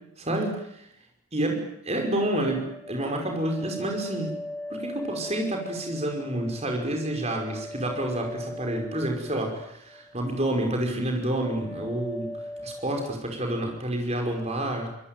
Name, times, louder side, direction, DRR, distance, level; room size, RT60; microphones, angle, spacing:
voice 1, 0.2-0.9 1.3-4.3 4.7-12.3 12.6-14.9, right 1 dB, 30° right, 2 dB, 5.5 m, -29 dB
sound 1, 2.4-10.2 10.5-11.0 11.4-13.1, left 1 dB, 10° left, 1.0 m, -40 dB
25.0 x 20.5 x 9.3 m, 0.79 s
head